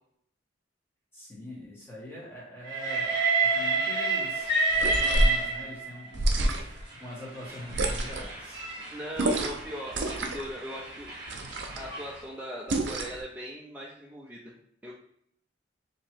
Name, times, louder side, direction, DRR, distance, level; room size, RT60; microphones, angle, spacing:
voice 1, 1.1-3.1 3.4-4.5 4.9-8.6, left 1 dB, 15° left, -7 dB, 1.5 m, -43 dB
Train, 2.7-6.1 6.9-12.2, right 3 dB, 25° right, 1.2 m, -30 dB
sound 1, 4.7-5.4 6.1-6.8 7.7-8.3 9.2-9.6 9.9-10.5 11.3-11.9 12.7-13.2, right 1 dB, 80° right, 0.6 m, -28 dB
voice 2, 8.9-11.1 11.8-14.6 14.8-14.9, equal, 10° right, -4 dB, 0.4 m, -39 dB
2.9 x 2.8 x 4.5 m, 0.69 s
head